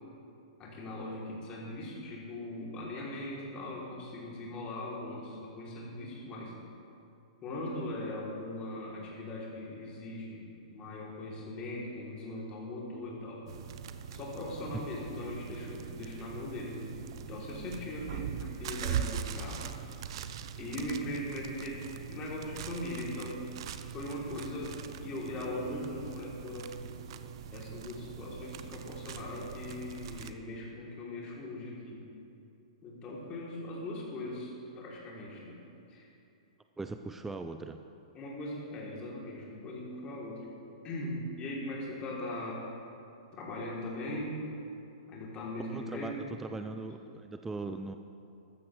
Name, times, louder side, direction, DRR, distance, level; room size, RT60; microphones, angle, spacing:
voice 1, 0.6-6.5 7.4-13.4 14.1-16.9 17.3-19.8 20.6-23.5 23.9-26.9 27.5-32.0 32.8-35.6 35.9-36.1 38.1-40.5 40.8-42.6 43.3-44.4 45.1-46.2, left 1 dB, 30° left, -4 dB, 3.1 m, -40 dB
sound 1, 13.5-30.3, right 8 dB, 50° right, 0.6 m, -41 dB
voice 2, 36.8-37.8 45.7-46.1 46.4-48.0, right 3 dB, 10° right, 7 dB, 0.4 m, -39 dB
14.5 x 13.0 x 3.3 m, 2.7 s
figure-of-eight pair, 110°, 3 cm